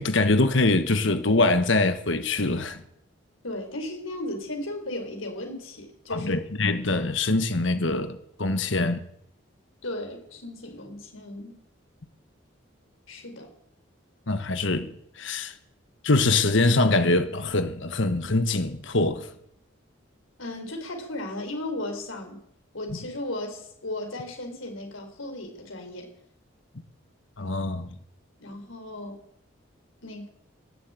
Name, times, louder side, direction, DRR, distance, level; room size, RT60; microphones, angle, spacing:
voice 1, 0.0-2.8 6.1-9.1 14.3-15.5 16.0-19.3 27.4-28.0, left 2 dB, 70° left, 1.3 m, -24 dB
voice 2, 3.4-6.4 9.8-11.6 13.1-13.5 20.4-22.4 22.7-26.1 28.4-29.2 30.0-30.3, left 1 dB, 85° left, 4.6 m, -35 dB
18.5 x 7.7 x 9.2 m
head